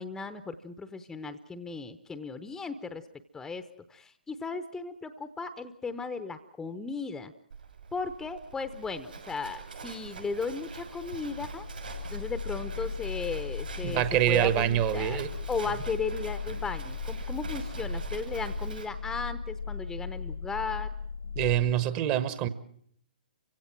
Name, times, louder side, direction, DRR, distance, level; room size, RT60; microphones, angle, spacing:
voice 1, 0.0-3.0 3.3-3.6 3.9-7.3 7.9-11.7 12.1-15.2 15.5-20.9, left 4 dB, 10° left, 0.8 m, -36 dB
Livestock farm animals working animals, 7.5-18.8, right 5 dB, 70° right, 6.6 m, -43 dB
sound 1, 10.7-21.7, left 6 dB, 70° left, 0.9 m, -37 dB
voice 2, 13.8-15.3 21.4-22.5, right 12 dB, 30° right, 1.3 m, -25 dB
29.0 x 16.5 x 7.5 m
figure-of-eight pair, 125°, 5 cm